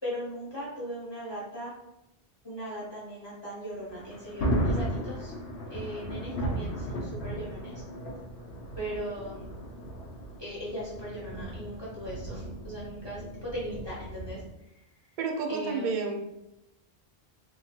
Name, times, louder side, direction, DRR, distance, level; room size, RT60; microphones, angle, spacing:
voice 1, 0.0-1.7 2.4-5.3 5.7-7.8 8.8-9.5 10.4-14.4 15.5-15.9, equal, 25° left, -7 dB, 0.9 m, -38 dB
Thunder, 3.8-14.5, right 1 dB, 90° left, 0.9 m, -35 dB
voice 2, 15.2-16.3, right 4 dB, 60° right, 3 dB, 0.6 m, -30 dB
3.0 x 2.2 x 2.8 m, 0.89 s
omnidirectional pair, 1.0 m